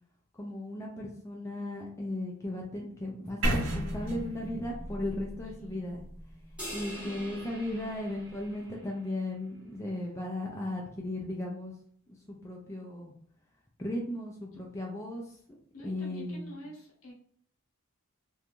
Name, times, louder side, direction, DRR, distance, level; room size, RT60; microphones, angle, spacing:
voice 1, 0.4-6.0 6.7-11.7 12.3-13.1 13.8-15.6 15.8-16.6, left 1 dB, 15° left, -2 dB, 0.3 m, -36 dB
sound 1, 3.4-7.4, right 1 dB, 70° right, 0.9 m, -34 dB
voice 2, 5.6-5.9 6.9-7.3 14.5-14.6 15.7-17.1, left 1 dB, 70° left, -1 dB, 0.8 m, -47 dB
sound 2, 6.6-9.1, equal, 5° right, 1.0 m, -44 dB
2.5 x 2.2 x 2.9 m, 0.62 s
head